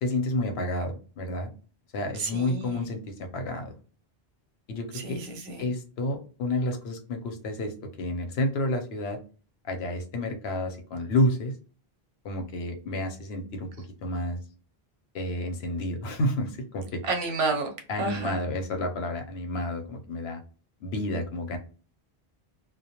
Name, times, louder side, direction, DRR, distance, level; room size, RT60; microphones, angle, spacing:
voice 1, 0.0-1.5 1.9-3.7 4.7-5.2 5.6-9.2 9.6-11.5 12.2-14.4 15.1-17.0 17.9-20.4 20.8-21.6, left 1 dB, 80° left, 4 dB, 0.9 m, -30 dB
voice 2, 2.1-2.8 4.9-5.7 17.0-17.7 18.0-18.4, right 3 dB, 90° right, 4 dB, 0.9 m, -30 dB
2.2 x 2.1 x 2.8 m, 0.38 s
omnidirectional pair, 1.0 m